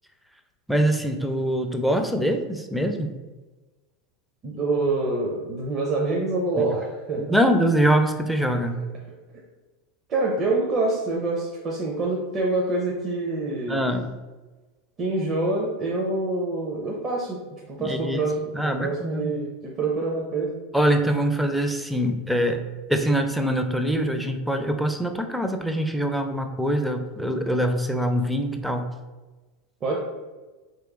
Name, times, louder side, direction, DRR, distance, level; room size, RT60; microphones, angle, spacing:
voice 1, 0.7-3.1 7.2-8.8 13.7-14.1 17.8-18.3 18.5-19.4 20.7-28.9, equal, ahead, 5 dB, 0.4 m, -24 dB
voice 2, 4.4-7.4 10.1-13.9 15.0-17.4 17.7-20.6 29.8-30.0, right 2 dB, 40° right, -3 dB, 0.7 m, -26 dB
3.1 x 3.0 x 3.7 m, 1.2 s
hypercardioid pair, 110°, 0 cm